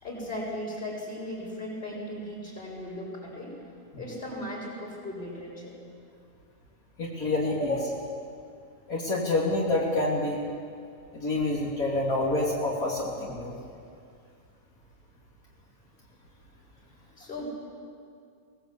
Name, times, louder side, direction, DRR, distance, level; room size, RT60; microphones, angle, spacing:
voice 1, 0.0-3.6 4.0-5.8 7.4-7.6 17.2-17.5, left 1 dB, 30° left, -2 dB, 6.5 m, -37 dB
voice 2, 7.0-7.9 8.9-10.4 11.1-13.5, left 2 dB, 75° left, -4 dB, 3.3 m, -27 dB
23.5 x 19.0 x 8.3 m, 2.3 s
omnidirectional pair, 1.5 m